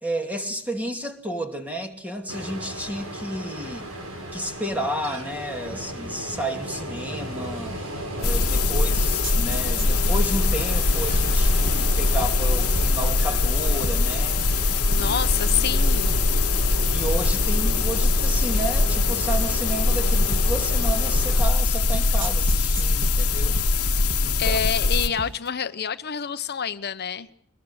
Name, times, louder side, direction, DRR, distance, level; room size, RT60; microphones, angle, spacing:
voice 1, 0.0-3.9 4.3-7.9 8.2-14.4 14.9-15.2 16.9-23.6 24.0-24.6, right 1 dB, 5° right, 2.8 m, -32 dB
Ocean, 2.3-21.4, right 1 dB, 70° right, 6.3 m, -34 dB
sound 1, 8.2-25.1, left 3 dB, 85° left, 1.3 m, -22 dB
sound 2, 8.2-25.5, right 3 dB, 85° right, 1.6 m, -38 dB
voice 2, 15.0-16.2 24.4-27.3, left 8 dB, 50° left, 1.0 m, -27 dB
23.0 x 20.5 x 8.2 m
head